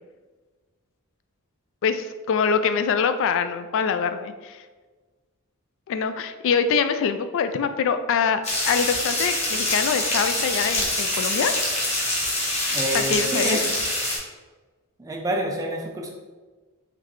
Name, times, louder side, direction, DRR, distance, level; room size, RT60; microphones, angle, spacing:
voice 1, 1.8-4.6 5.9-8.4 8.7-11.5 12.9-13.6, left 6 dB, 60° left, 10 dB, 0.3 m, -24 dB
sound 1, 8.4-14.2, left 1 dB, 30° left, 1.0 m, -25 dB
voice 2, 12.7-13.7 15.0-16.1, right 1 dB, 15° right, -1 dB, 0.4 m, -27 dB
4.0 x 3.2 x 3.0 m, 1.3 s
head